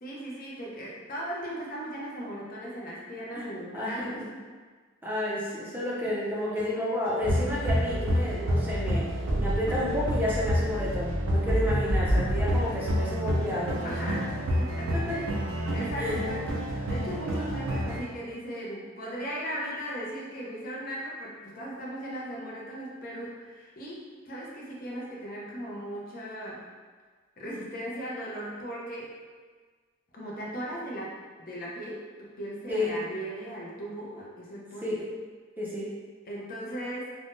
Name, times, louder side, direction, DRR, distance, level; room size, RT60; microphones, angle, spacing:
voice 1, 0.0-4.3 7.5-7.6 13.8-15.3 15.7-26.6 27.4-29.1 30.1-34.9 36.3-37.1, equal, 45° left, -4 dB, 0.6 m, -37 dB
voice 2, 3.7-4.3 5.0-9.1 9.4-14.2 14.9-15.2 15.9-16.2 32.7-32.9 34.8-35.1 35.6-35.9, left 1 dB, 10° right, -6 dB, 0.5 m, -31 dB
sound 1, 6.0-9.3 9.8-9.9, left 1 dB, 65° left, 1.0 m, -51 dB
sound 2, 7.2-18.0, equal, 70° right, 0.4 m, -28 dB
3.4 x 2.1 x 2.5 m, 1.5 s
head